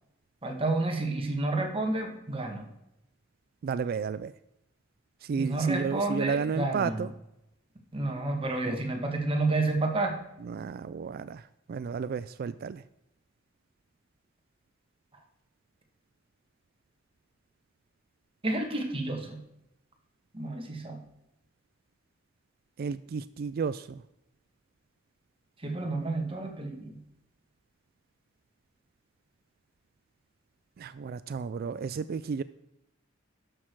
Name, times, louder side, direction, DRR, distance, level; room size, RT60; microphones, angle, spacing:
voice 1, 0.4-2.7 5.4-7.0 7.9-10.1 18.4-19.4 20.3-21.0 25.6-27.0, right 2 dB, 25° right, 2 dB, 1.8 m, -30 dB
voice 2, 3.6-4.3 5.2-7.1 8.7-8.8 10.4-12.8 22.8-24.0 30.8-32.4, right 5 dB, 50° right, 15 dB, 0.3 m, -32 dB
12.0 x 6.5 x 4.7 m, 0.86 s
head